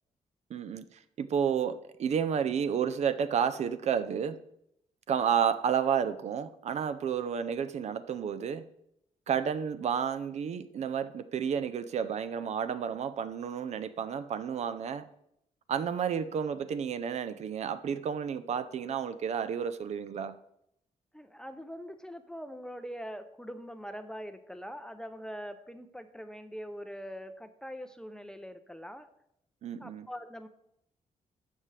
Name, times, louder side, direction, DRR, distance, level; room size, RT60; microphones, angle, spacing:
voice 1, 0.5-0.8 1.2-4.4 5.1-8.7 9.3-15.1 15.7-20.4 29.6-30.1, right 7 dB, 55° right, 12 dB, 0.5 m, -31 dB
voice 2, 21.1-29.1 29.8-30.5, equal, 5° left, 9 dB, 0.5 m, -43 dB
12.5 x 7.5 x 3.3 m, 0.75 s
wide cardioid pair, 155°, 13 cm